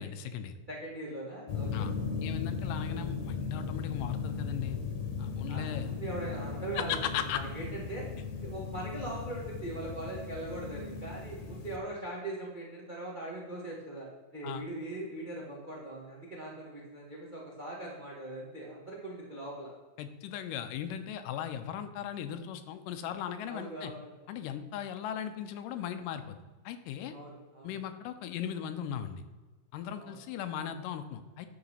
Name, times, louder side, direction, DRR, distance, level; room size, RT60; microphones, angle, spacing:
voice 1, 0.0-0.6 1.7-1.9 2.2-4.8 5.2-5.9 6.8-7.4 14.4-14.6 20.0-23.9 24.3-26.4 26.7-27.2 27.6-29.2 29.7-31.5, left 9 dB, 85° left, 9 dB, 2.3 m, -37 dB
voice 2, 0.7-1.9 5.5-8.1 8.4-19.7 23.4-24.1 27.1-27.7 30.0-30.2, right 2 dB, 80° right, -4 dB, 0.4 m, -41 dB
sound 1, 1.5-11.8, left 5 dB, 70° left, 2.0 m, -37 dB
11.0 x 3.9 x 5.6 m, 1.3 s
omnidirectional pair, 3.7 m